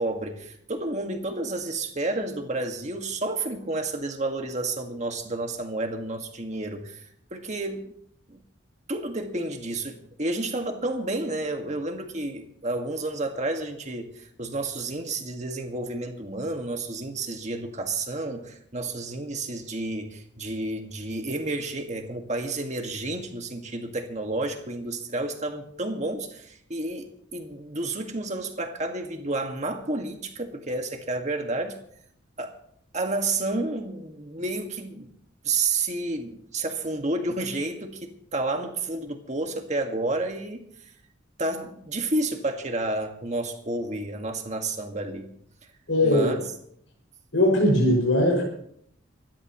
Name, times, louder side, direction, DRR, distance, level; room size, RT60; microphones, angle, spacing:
voice 1, 0.0-7.9 8.3-8.4 8.9-31.8 32.4-32.5 32.9-35.1 35.4-40.6 41.4-45.3 46.0-46.4, right 2 dB, 35° right, 4 dB, 1.8 m, -30 dB
voice 2, 45.9-46.4 47.3-48.4, left 1 dB, 65° left, -2 dB, 6.0 m, -20 dB
26.5 x 12.5 x 3.1 m, 0.68 s
head